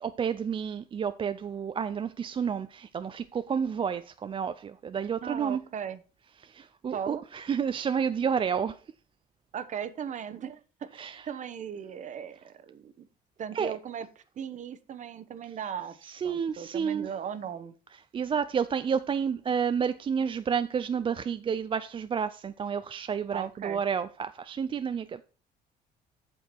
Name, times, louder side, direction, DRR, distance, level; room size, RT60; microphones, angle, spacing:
voice 1, 0.0-5.6 6.4-8.8 10.9-11.3 13.5-13.7 16.0-17.1 17.9-25.2, right 7 dB, 30° right, 0.4 m, -30 dB
voice 2, 5.2-6.0 6.9-7.2 9.5-13.1 13.4-14.1 14.4-17.7 23.3-23.8, right 8 dB, 45° right, 1.0 m, -38 dB
8.2 x 6.9 x 4.4 m
cardioid pair, 110°, 17 cm